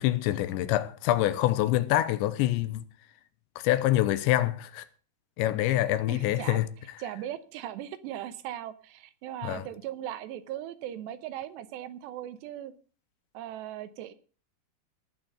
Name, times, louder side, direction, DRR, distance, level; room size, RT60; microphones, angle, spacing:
voice 1, 0.0-2.8 3.6-4.8 5.4-6.7 9.4-9.6, left 14 dB, 90° left, 3.1 m, -26 dB
voice 2, 6.1-6.6 7.0-12.7 13.3-14.1, right 12 dB, 80° right, 3.0 m, -38 dB
18.5 x 6.2 x 6.6 m
omnidirectional pair, 5.1 m